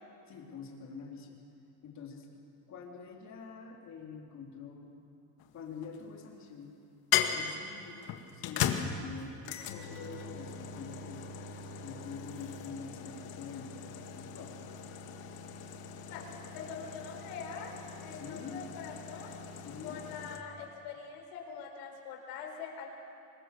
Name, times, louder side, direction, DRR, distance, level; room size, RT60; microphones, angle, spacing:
voice 1, 0.3-1.4 1.8-2.3 2.7-4.9 5.5-6.8 7.3-11.3 11.8-14.5 18.1-18.7 19.6-20.0, left 5 dB, 40° left, 0 dB, 3.6 m, -46 dB
sound 1, 5.4-6.1 7.1-20.4, left 8 dB, 60° left, 1.9 m, -38 dB
voice 2, 16.5-19.3 19.8-22.9, left 6 dB, 85° left, 2 dB, 4.9 m, -44 dB
25.0 x 22.0 x 6.9 m, 2.6 s
cardioid pair, 155°, 41 cm